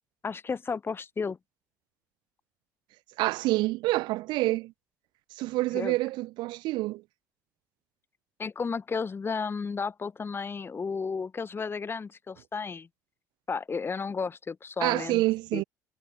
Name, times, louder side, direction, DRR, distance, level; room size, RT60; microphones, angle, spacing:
voice 1, 0.2-1.4 5.7-6.0 8.4-12.9 13.5-15.2 15.5-15.6, left 5 dB, 25° left, 0.8 m, -33 dB
voice 2, 3.2-4.7 5.4-7.0 14.8-15.6, right 19 dB, 55° right, 0.5 m, -27 dB
figure-of-eight pair, 55°, 9 cm